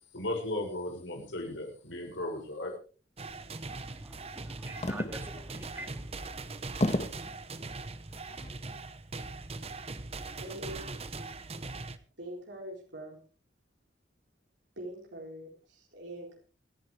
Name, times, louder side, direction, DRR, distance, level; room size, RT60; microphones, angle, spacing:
voice 1, 0.1-2.7, left 1 dB, 85° left, 1 dB, 6.5 m, -36 dB
sound 1, 3.2-12.0, right 3 dB, 35° right, 1.0 m, -41 dB
voice 2, 3.7-6.4, right 1 dB, 10° right, 6 dB, 2.4 m, -47 dB
sound 2, 4.8-5.4 6.0-6.1 6.8-7.3 8.1-8.5, left 1 dB, 35° left, 1.6 m, -31 dB
voice 3, 10.4-11.1 12.2-13.2 14.8-16.4, right 1 dB, 75° right, -2 dB, 4.4 m, -43 dB
27.5 x 11.0 x 3.4 m, 0.38 s
head